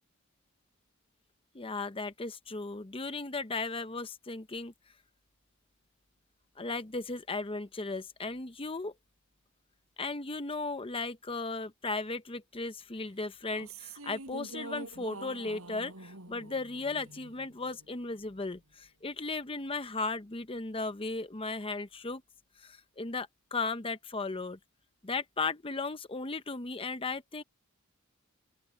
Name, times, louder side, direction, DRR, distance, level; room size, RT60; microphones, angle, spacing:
voice 1, 1.5-4.7 6.6-8.9 10.0-22.2 22.6-24.6 25.0-27.4, left 3 dB, 25° left, 0.9 m, -36 dB
sound 1, 13.4-17.9, right 2 dB, 90° right, 5.8 m, -46 dB
open air
head